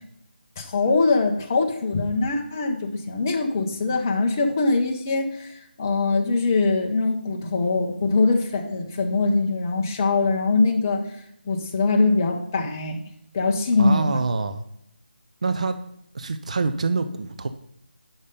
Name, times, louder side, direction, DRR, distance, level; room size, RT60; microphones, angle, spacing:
voice 1, 0.6-11.0 11.5-13.0 13.3-14.2, left 3 dB, 15° left, 2 dB, 0.6 m, -22 dB
voice 2, 13.8-14.6 15.4-15.8 16.1-17.5, right 4 dB, 40° right, 9 dB, 0.4 m, -25 dB
6.9 x 5.5 x 5.1 m, 0.75 s
figure-of-eight pair, 175°, 6 cm